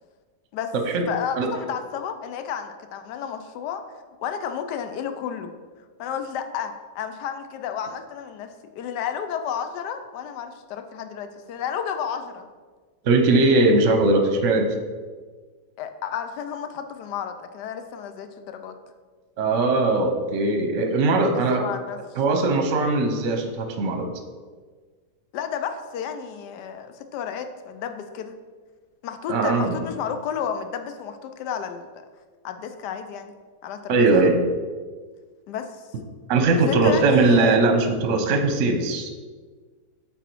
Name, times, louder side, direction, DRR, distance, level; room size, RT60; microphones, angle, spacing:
voice 1, 1.1-3.8 4.2-5.5 6.0-12.5 15.8-18.7 21.2-22.0 25.3-28.3 29.0-31.9 32.4-33.3 33.6-34.3 35.5-35.8 36.6-37.6, left 8 dB, 80° left, 8 dB, 1.2 m, -32 dB
voice 2, 13.0-14.7 19.4-21.7 22.2-24.1 29.3-29.9 33.9-34.4 36.3-39.1, right 3 dB, 55° right, 6 dB, 0.9 m, -20 dB
8.0 x 4.1 x 4.5 m, 1.5 s
omnidirectional pair, 1.8 m